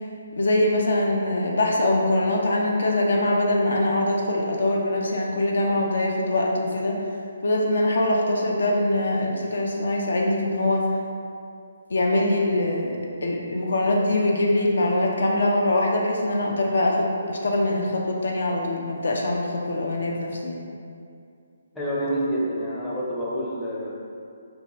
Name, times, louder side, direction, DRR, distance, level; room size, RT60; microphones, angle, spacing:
voice 1, 0.4-7.0 7.4-10.8 11.9-20.6, left 1 dB, 65° left, -1 dB, 0.3 m, -23 dB
voice 2, 21.7-23.9, equal, 10° left, -8 dB, 0.5 m, -27 dB
2.6 x 2.2 x 2.9 m, 2.4 s
figure-of-eight pair, 140°, 0 cm